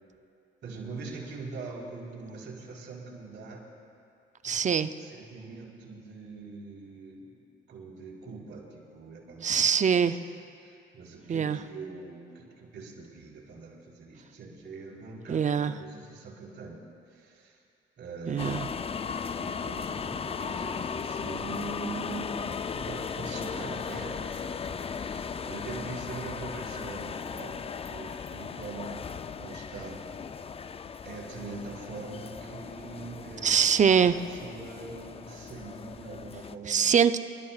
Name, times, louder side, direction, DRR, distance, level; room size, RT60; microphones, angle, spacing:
voice 1, 0.6-3.7 4.5-4.6 5.0-16.8 17.1-17.6 18.0-19.1 19.4-22.4 22.7-30.1 31.0-33.6 34.3-36.9, right 4 dB, 65° right, -3 dB, 3.9 m, -43 dB
voice 2, 4.4-4.9 9.4-10.2 11.3-11.6 15.3-15.7 18.3-18.7 33.4-34.2 36.7-37.2, right 7 dB, 40° right, 11 dB, 0.6 m, -23 dB
sound 1, 18.4-36.6, left 6 dB, 30° left, 0.4 m, -37 dB
29.0 x 13.0 x 2.4 m, 2.5 s
cardioid pair, 90°, 20 cm